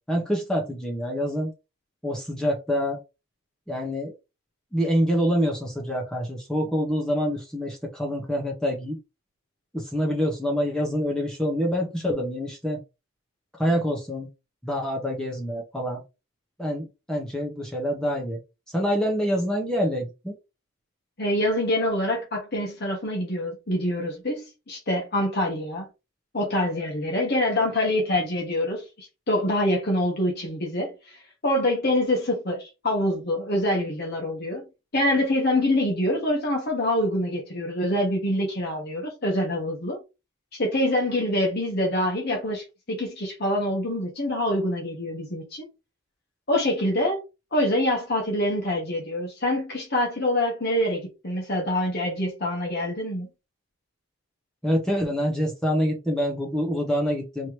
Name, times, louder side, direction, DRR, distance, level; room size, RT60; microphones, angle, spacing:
voice 1, 0.1-1.5 2.0-3.0 3.7-4.1 4.7-9.0 9.7-12.8 13.6-14.3 14.6-16.0 16.6-18.4 18.7-20.4 54.6-57.5, equal, 5° left, 0.9 m, -26 dB
voice 2, 21.2-25.9 26.3-34.6 34.9-40.0 40.5-45.7 46.5-47.2 47.5-53.3, left 1 dB, 50° left, 1.2 m, -25 dB
4.4 x 2.9 x 3.1 m
head